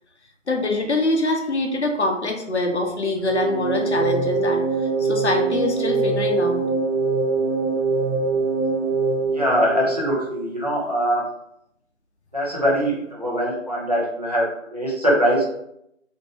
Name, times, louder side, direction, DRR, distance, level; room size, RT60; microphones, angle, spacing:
voice 1, 0.5-4.6 5.0-6.6, left 2 dB, 60° left, 3 dB, 0.6 m, -24 dB
sound 1, 3.2-10.5, right 4 dB, 70° right, 0.5 m, -23 dB
voice 2, 9.3-11.2 12.3-15.5, equal, 30° right, -6 dB, 0.6 m, -22 dB
2.6 x 2.2 x 2.9 m, 0.76 s
figure-of-eight pair, 170°, 38 cm